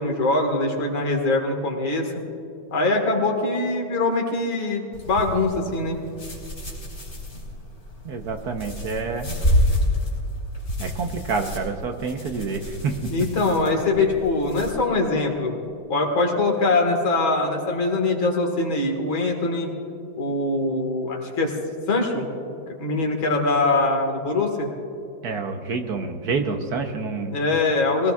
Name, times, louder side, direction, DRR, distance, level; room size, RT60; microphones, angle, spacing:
voice 1, 0.0-2.1 2.7-6.0 13.1-15.5 15.9-19.7 20.2-21.5 21.9-22.3 22.8-24.7 27.3-28.1, left 2 dB, 85° left, 2 dB, 2.6 m, -23 dB
sound 1, 4.9-14.7, left 1 dB, 30° left, 3.5 m, -29 dB
voice 2, 8.0-9.3 10.8-13.1 25.2-27.3, right 4 dB, 60° right, 5 dB, 1.3 m, -28 dB
22.5 x 18.0 x 2.4 m, 2.5 s
omnidirectional pair, 2.1 m